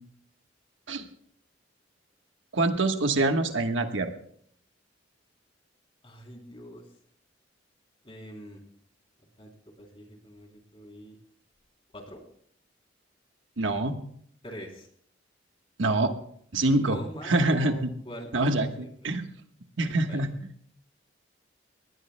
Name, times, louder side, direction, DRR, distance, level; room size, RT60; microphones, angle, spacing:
voice 1, 2.5-4.1 13.6-14.0 15.8-16.1 16.5-17.0 17.2-17.9 18.3-19.3 19.8-20.3, right 2 dB, 85° right, 6 dB, 1.3 m, -25 dB
voice 2, 6.0-6.8 8.0-8.6 9.4-9.5 9.8-11.2 11.9-12.2 14.4-14.9 16.8-18.9 19.9-20.3, equal, 30° left, 1 dB, 3.3 m, -43 dB
23.0 x 19.0 x 2.2 m, 0.64 s
head